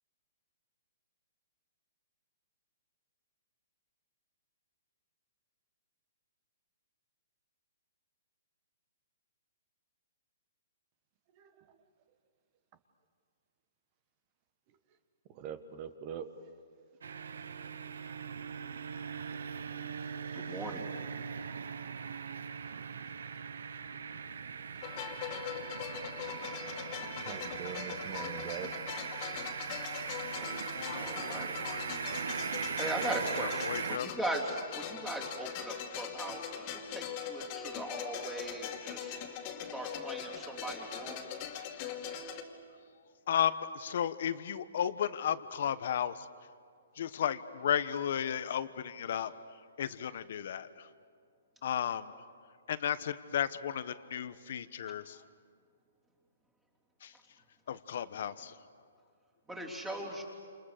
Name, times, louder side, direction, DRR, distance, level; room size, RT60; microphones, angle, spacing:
voice 1, 11.3-11.8 15.3-16.5 27.0-28.8, right 8 dB, 30° right, 10 dB, 1.4 m, -44 dB
sound 1, 17.0-34.0, right 6 dB, 80° right, 1.1 m, -40 dB
voice 2, 20.3-20.9 30.9-31.5 32.8-39.2 39.7-41.4 59.5-60.2, right 1 dB, 10° right, -4 dB, 3.4 m, -39 dB
sound 2, 24.8-42.4, left 8 dB, 30° left, 2.5 m, -41 dB
voice 3, 30.7-31.8 33.4-34.1 43.3-46.1 47.0-49.3 49.8-50.7 51.6-52.1 52.7-55.2 57.0-57.1 57.7-58.5, left 9 dB, 55° left, 13 dB, 1.2 m, -34 dB
29.0 x 28.5 x 6.7 m, 2.2 s
hypercardioid pair, 160°, 0 cm